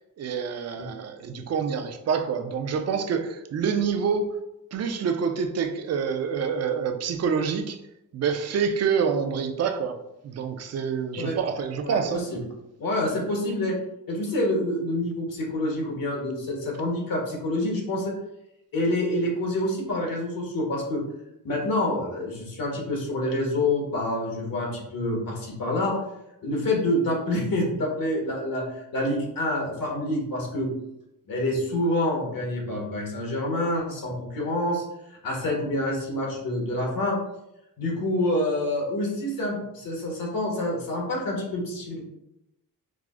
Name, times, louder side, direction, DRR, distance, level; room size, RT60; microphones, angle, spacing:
voice 1, 0.2-4.3 4.7-7.8 8.1-10.0 10.2-12.2, right 6 dB, 45° right, 7 dB, 0.4 m, -27 dB
voice 2, 11.8-12.4 12.8-13.8 14.1-18.1 18.7-21.0 21.4-26.0 26.4-30.7 31.3-34.8 35.2-37.2 37.8-42.0, left 1 dB, 65° left, -1 dB, 1.1 m, -27 dB
4.7 x 2.0 x 2.4 m, 0.86 s
cardioid pair, 105°, 36 cm